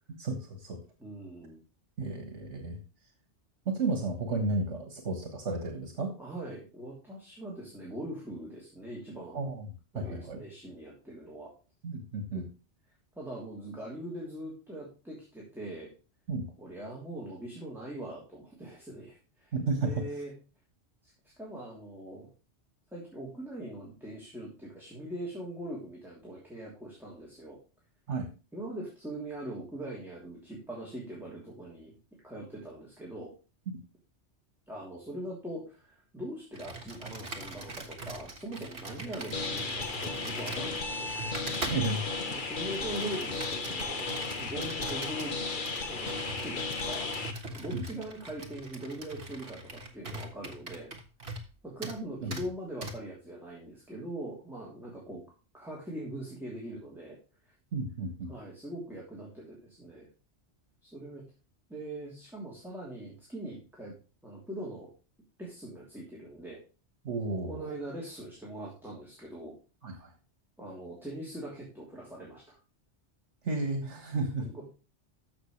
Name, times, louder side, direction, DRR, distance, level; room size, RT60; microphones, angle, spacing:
voice 1, 0.2-0.8 2.0-2.8 3.6-6.1 9.3-9.6 9.9-10.4 11.8-12.4 16.3-16.5 19.5-19.9 28.1-28.3 41.7-42.2 47.7-47.8 52.2-52.3 57.7-58.3 67.0-67.7 69.8-70.1 73.4-74.5, right 3 dB, 75° right, 5 dB, 1.7 m, -32 dB
voice 2, 1.0-1.6 6.2-9.5 9.9-11.5 12.3-12.4 13.1-15.9 16.6-20.3 21.0-22.3 22.9-27.6 28.5-31.9 32.2-33.3 34.7-41.4 42.3-45.3 45.9-47.1 47.5-50.9 51.6-55.2 55.5-57.2 57.4-57.5 58.3-60.1 60.8-61.2 61.7-63.9 64.2-64.9 65.4-66.6 67.5-69.5 70.6-72.6 74.4-74.6, right 1 dB, ahead, -5 dB, 3.0 m, -42 dB
Computer keyboard, 36.5-51.5 51.8-52.0 52.3-52.5 52.8-53.0, right 2 dB, 60° right, 1.7 m, -42 dB
sound 1, 39.3-47.3, left 4 dB, 45° left, 1.2 m, -35 dB
14.0 x 6.1 x 3.2 m, 0.32 s
omnidirectional pair, 1.2 m